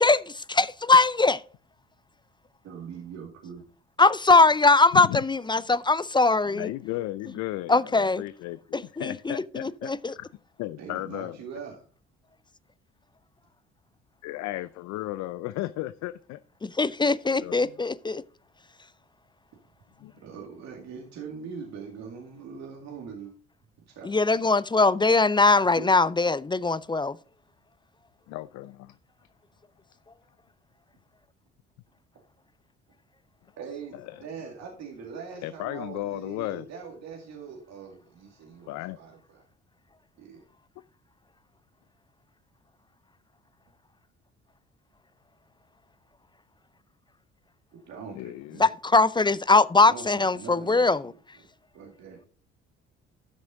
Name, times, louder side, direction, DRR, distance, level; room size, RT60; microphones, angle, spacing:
voice 1, 0.0-1.4 4.0-6.7 7.7-8.2 8.7-10.1 16.6-18.2 24.0-27.2 48.6-51.1, left 3 dB, 15° left, 0.5 m, -21 dB
voice 2, 2.6-3.6 10.8-11.8 20.2-23.3 23.9-24.5 25.7-25.9 33.6-39.4 40.2-40.4 47.8-48.7 49.9-51.5 51.7-52.2, right 6 dB, 65° right, 2.3 m, -42 dB
voice 3, 6.5-10.3 10.6-11.4 14.2-16.4 17.3-17.7 20.0-20.1 28.3-28.9 33.9-34.0 35.4-36.7 38.7-39.0 48.1-48.6, left 16 dB, 65° left, 0.5 m, -35 dB
12.5 x 6.2 x 3.8 m
hypercardioid pair, 55°, 30 cm